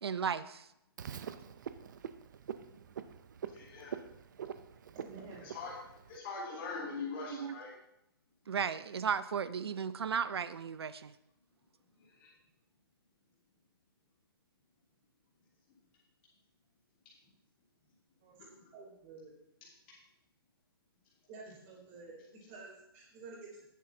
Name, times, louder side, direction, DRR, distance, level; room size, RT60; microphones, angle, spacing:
voice 1, 0.0-0.7 7.3-7.6 8.5-11.2, right 7 dB, 85° right, 13 dB, 0.7 m, -35 dB
Frog, 1.0-6.2, right 8 dB, 50° right, 0.7 m, -45 dB
voice 2, 3.5-3.9 5.4-5.7 6.1-7.7 12.2-12.3 18.4-18.6, left 4 dB, 30° left, -6 dB, 2.8 m, -42 dB
voice 3, 4.9-5.5 18.2-18.3 18.7-19.3 21.3-23.6, right 3 dB, 25° right, -2 dB, 3.5 m, -50 dB
18.0 x 7.4 x 2.9 m, 0.82 s
hypercardioid pair, 170°, 13 cm